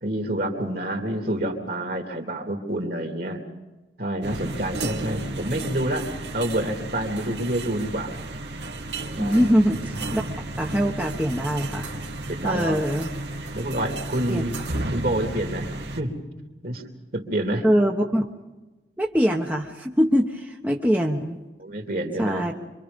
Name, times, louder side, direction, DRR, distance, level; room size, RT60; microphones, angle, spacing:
voice 1, 0.0-3.4 4.0-6.1 6.3-8.2 9.2-9.5 12.3-12.8 13.5-14.5 14.9-15.7 15.9-16.2 16.6-16.8 17.1-17.6 21.6-22.4, right 1 dB, 55° right, 3 dB, 3.3 m, -28 dB
sound 1, 4.2-16.0, right 2 dB, 75° right, 2.3 m, -33 dB
voice 2, 9.2-10.2 10.6-11.9 12.4-13.1 14.3-14.4 17.6-18.2 19.0-21.4 22.2-22.5, equal, 10° right, 0 dB, 1.2 m, -23 dB
27.0 x 24.5 x 5.4 m, 1.1 s
head